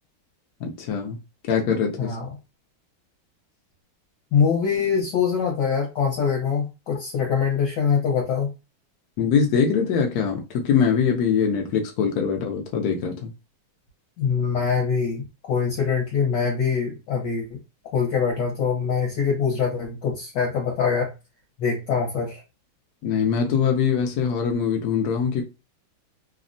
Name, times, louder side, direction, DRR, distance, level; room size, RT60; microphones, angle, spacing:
voice 1, 0.6-1.2 1.5-2.2 9.2-13.3 23.0-25.4, left 6 dB, 90° left, 0.8 m, -23 dB
voice 2, 4.3-8.5 14.2-17.6 17.9-21.1 21.6-22.4, left 6 dB, 65° left, 1.3 m, -23 dB
3.4 x 2.1 x 2.5 m
omnidirectional pair, 2.3 m